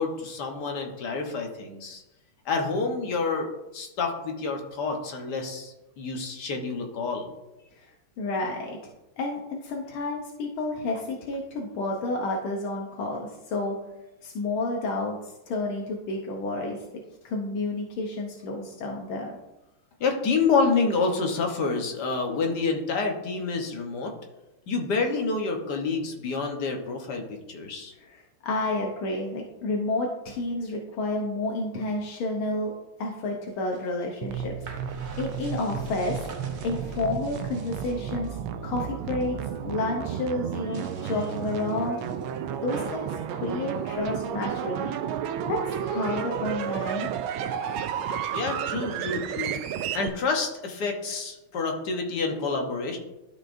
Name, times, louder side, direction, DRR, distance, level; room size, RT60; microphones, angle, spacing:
voice 1, 0.0-2.0 2.4-7.3 20.0-24.1 24.7-27.9 48.3-49.6 49.9-53.0, left 4 dB, 60° left, 2 dB, 1.5 m, -28 dB
voice 2, 8.2-8.8 9.2-13.8 14.2-16.8 17.2-19.3 28.0-32.7 33.0-34.5 35.1-36.3 36.6-39.4 39.6-42.0 42.6-44.9 45.5-47.1, left 2 dB, 80° left, 0 dB, 1.7 m, -30 dB
sound 1, 33.5-38.4 38.8-39.3 39.6-40.1 40.6-44.5, right 3 dB, 60° right, 0.7 m, -46 dB
sound 2, 34.2-50.1, right 8 dB, 80° right, 1.4 m, -32 dB
12.5 x 5.2 x 2.6 m, 0.97 s
omnidirectional pair, 2.3 m